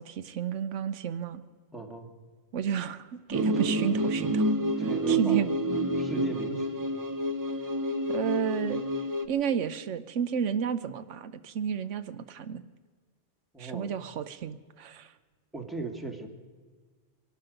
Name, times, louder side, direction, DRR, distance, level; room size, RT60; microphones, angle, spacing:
voice 1, 0.0-1.4 2.5-4.5 5.1-5.5 8.1-8.8 9.2-12.6 13.6-15.1, right 8 dB, 90° right, 12 dB, 1.1 m, -31 dB
voice 2, 1.7-2.1 3.5-3.7 4.8-5.5 5.9-6.8 13.5-13.9 15.5-16.3, right 2 dB, ahead, 2 dB, 1.7 m, -37 dB
sound 1, 3.3-9.3, right 1 dB, 20° right, 0.6 m, -28 dB
24.0 x 11.5 x 5.2 m, 1.5 s
omnidirectional pair, 1.2 m